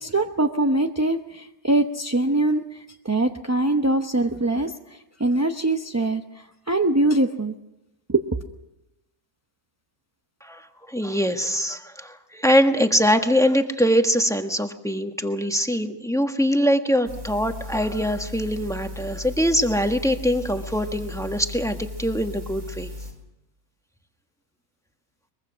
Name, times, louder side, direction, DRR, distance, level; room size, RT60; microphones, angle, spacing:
voice 1, 0.0-2.6 3.0-4.7 5.2-6.2 6.7-7.5 8.1-8.2, right 2 dB, 15° right, 5 dB, 0.6 m, -22 dB
voice 2, 10.9-22.9, equal, ahead, 6 dB, 1.3 m, -23 dB
sound 1, 17.1-23.1, left 2 dB, 70° right, 5.1 m, -36 dB
23.0 x 22.5 x 6.2 m, 0.91 s
omnidirectional pair, 1.5 m